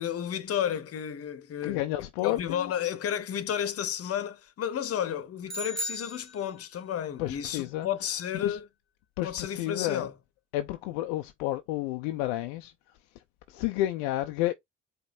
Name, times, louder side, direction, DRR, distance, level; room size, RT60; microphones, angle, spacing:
voice 1, 0.0-1.9 2.2-8.7 9.2-10.1, left 9 dB, 45° left, 1.0 m, -32 dB
voice 2, 1.6-2.7 7.2-7.9 8.4-8.6 9.2-10.1 10.5-12.7 13.5-14.5, left 15 dB, 70° left, 0.5 m, -31 dB
sound 1, 5.5-6.9, equal, ahead, 2.3 m, -36 dB
4.9 x 2.2 x 4.2 m
figure-of-eight pair, 50°, 34 cm